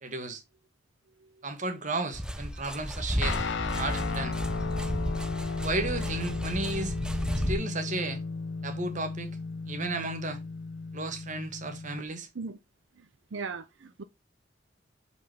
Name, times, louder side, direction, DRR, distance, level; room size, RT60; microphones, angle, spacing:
voice 1, 0.0-0.4 1.4-3.4 3.7-4.4 5.6-6.9 7.5-8.2 8.6-9.3 9.6-10.4 10.9-12.3, right 2 dB, 45° right, 1.4 m, -33 dB
sound 1, 2.1-7.5, equal, 5° right, 0.6 m, -33 dB
Guitar, 3.2-12.0, left 4 dB, 75° left, 0.7 m, -35 dB
voice 2, 13.0-14.0, right 4 dB, 85° right, 0.6 m, -39 dB
5.4 x 3.6 x 5.8 m
head